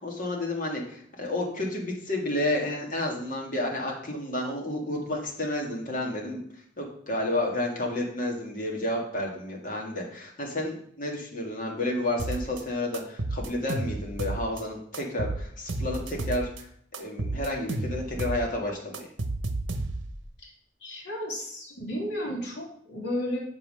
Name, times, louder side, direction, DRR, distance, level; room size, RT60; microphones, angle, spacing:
voice 1, 0.0-6.4 6.8-16.7 17.0-19.1, left 1 dB, 45° left, 0 dB, 2.1 m, -31 dB
sound 1, 12.2-12.6 12.9-14.6 14.9-16.6 16.9-18.4 18.7-20.2, right 2 dB, 80° right, 0.9 m, -32 dB
voice 2, 20.8-23.4, equal, 65° left, -3 dB, 2.9 m, -33 dB
6.6 x 5.6 x 6.4 m, 0.63 s
head